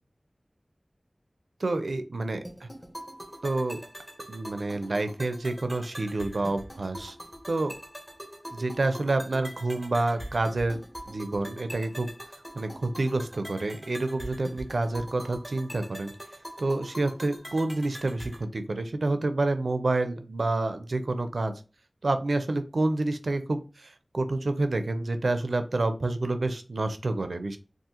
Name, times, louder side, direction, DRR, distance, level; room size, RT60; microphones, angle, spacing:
voice 1, 1.6-2.4 3.4-3.8 4.3-7.2 7.5-7.7 8.5-10.8 11.1-12.1 12.5-16.1 16.6-21.5 22.0-27.6, right 2 dB, 90° right, 8 dB, 0.4 m, -28 dB
sound 1, 2.4-18.4, equal, ahead, 1.0 m, -43 dB
3.6 x 2.5 x 2.8 m, 0.34 s
wide cardioid pair, 55°, 0 cm